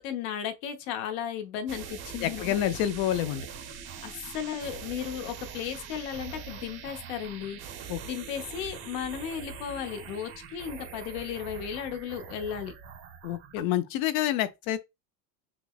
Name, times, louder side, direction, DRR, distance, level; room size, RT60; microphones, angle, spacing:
voice 1, 0.0-2.6 4.0-7.6 8.0-12.7, left 9 dB, 65° left, 0.9 m, -35 dB
sound 1, 1.7-13.6, right 7 dB, 35° right, 0.7 m, -43 dB
voice 2, 2.2-3.5 7.9-8.0 13.2-14.8, left 12 dB, 50° left, 0.5 m, -28 dB
6.1 x 2.1 x 2.3 m
cardioid pair, 165°, 41 cm